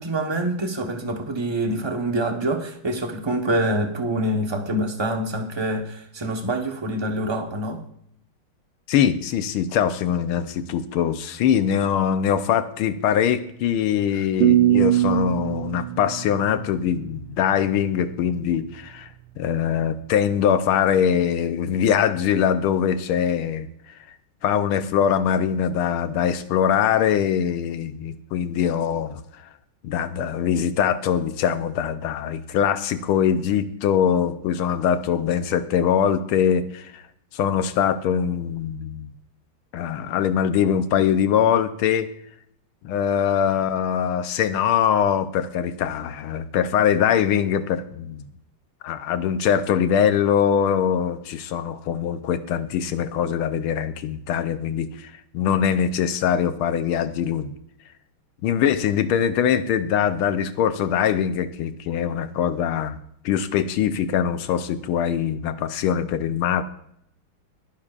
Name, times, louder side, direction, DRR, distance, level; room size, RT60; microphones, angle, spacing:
voice 1, 0.0-7.8, right 1 dB, 20° right, 0.7 m, -26 dB
voice 2, 8.9-19.1 19.4-23.7 24.4-29.2 29.8-37.0 37.3-39.1 39.7-42.1 42.8-48.3 48.8-57.5 58.4-63.0 63.2-66.6, left 8 dB, 85° left, 1.6 m, -22 dB
sound 1, 14.4-17.4, right 13 dB, 85° right, 1.5 m, -21 dB
20.5 x 10.5 x 2.5 m
omnidirectional pair, 2.3 m